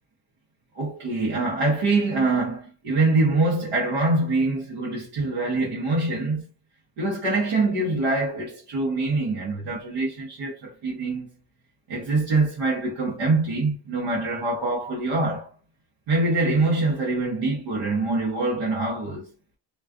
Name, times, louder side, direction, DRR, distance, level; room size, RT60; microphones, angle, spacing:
voice 1, 0.7-6.5 7.0-11.3 11.9-15.5 16.1-19.3, right 2 dB, 80° right, 0.8 m, -24 dB
2.3 x 2.3 x 2.4 m
supercardioid pair, 50°, 44 cm